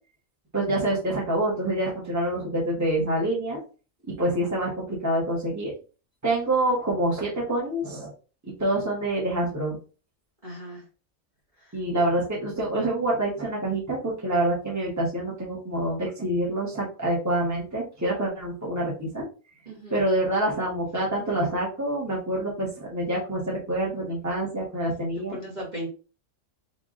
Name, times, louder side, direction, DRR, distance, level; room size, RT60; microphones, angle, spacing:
voice 1, 0.5-3.6 4.2-5.7 6.2-8.1 8.6-9.8 11.7-19.3 19.9-25.4, right 1 dB, 15° right, -4 dB, 1.5 m, -26 dB
voice 2, 10.4-10.8 11.6-11.8 19.6-20.0 25.0-25.9, equal, 35° right, -4 dB, 1.7 m, -38 dB
3.6 x 3.5 x 3.8 m, 0.35 s
omnidirectional pair, 1.4 m